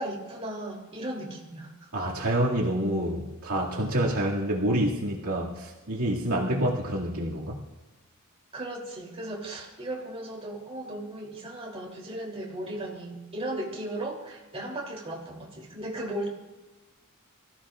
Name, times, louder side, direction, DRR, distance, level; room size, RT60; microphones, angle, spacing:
voice 1, 0.0-1.9 8.5-16.3, right 1 dB, 30° right, -3 dB, 3.3 m, -36 dB
voice 2, 1.9-7.6, right 1 dB, 75° right, -4 dB, 2.4 m, -27 dB
24.5 x 15.5 x 2.5 m, 1.1 s
head